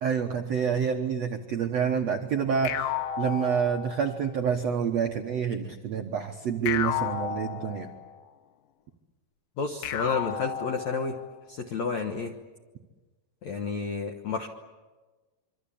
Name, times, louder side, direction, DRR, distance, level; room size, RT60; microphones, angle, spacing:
voice 1, 0.0-7.9, right 7 dB, 85° right, 3 dB, 1.5 m, -28 dB
sound 1, 2.6-4.3 6.7-8.2 9.8-11.3, left 10 dB, 85° left, 3.5 m, -33 dB
voice 2, 9.6-11.2 11.5-12.3 13.4-14.5, left 4 dB, 70° left, 3 dB, 1.7 m, -30 dB
26.0 x 24.5 x 8.6 m, 1.3 s
omnidirectional pair, 5.0 m